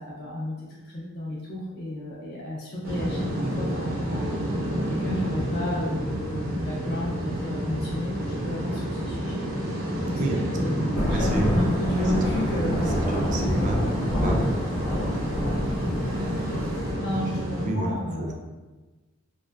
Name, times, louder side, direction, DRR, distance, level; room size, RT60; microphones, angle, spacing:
voice 1, 0.0-4.3 4.8-13.5 16.6-18.3, left 1 dB, 50° left, -6 dB, 0.4 m, -32 dB
sound 1, 2.8-17.7, equal, 90° right, 0.6 m, -29 dB
Thunder / Rain, 10.9-16.9, equal, 70° left, 0.7 m, -28 dB
voice 2, 11.1-11.6 12.0-12.8 13.1-13.8 14.2-14.6 15.8-16.0 17.6-18.3, right 1 dB, 35° right, 1 dB, 0.3 m, -30 dB
2.5 x 2.1 x 2.2 m, 1.2 s
head